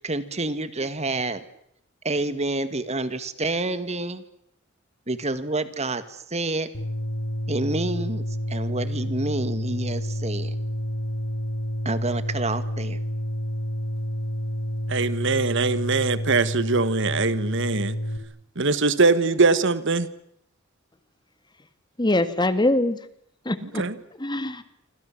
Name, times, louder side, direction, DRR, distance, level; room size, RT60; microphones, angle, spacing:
voice 1, 0.0-1.4 2.0-4.2 5.1-6.7 7.5-10.5 11.9-13.0, right 2 dB, 30° right, 12 dB, 2.0 m, -28 dB
sound 1, 6.7-18.2, equal, 90° left, 3.3 m, -29 dB
voice 2, 14.9-17.9 18.6-20.1 23.6-24.0, right 4 dB, 60° right, 15 dB, 1.4 m, -22 dB
voice 3, 22.0-23.0 23.4-23.8 24.2-24.6, left 1 dB, 20° left, 12 dB, 1.7 m, -23 dB
28.0 x 25.5 x 7.4 m, 0.73 s
head